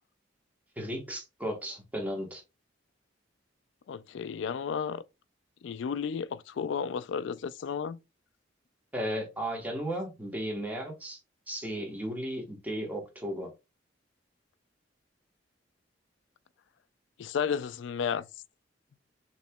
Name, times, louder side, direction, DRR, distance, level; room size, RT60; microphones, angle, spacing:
voice 1, 0.8-2.4 8.9-11.2 11.5-13.5, equal, 10° right, 1.2 m, -35 dB
voice 2, 3.9-5.0 5.6-8.0 17.2-18.2, left 7 dB, 75° left, 0.3 m, -32 dB
6.9 x 2.9 x 2.2 m
head